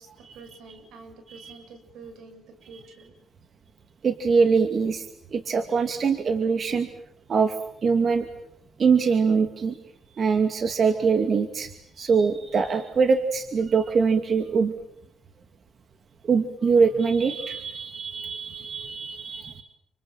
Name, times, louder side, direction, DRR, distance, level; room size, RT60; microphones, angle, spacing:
voice 1, 0.0-3.1, right 4 dB, 80° right, 7 dB, 7.1 m, -47 dB
voice 2, 4.0-5.1 5.3-6.9 7.3-7.6 7.8-8.3 8.8-9.8 10.1-14.7 16.2-19.6, right 5 dB, 50° right, 7 dB, 2.6 m, -23 dB
29.5 x 26.0 x 7.6 m, 0.76 s
cardioid pair, 90°, 0 cm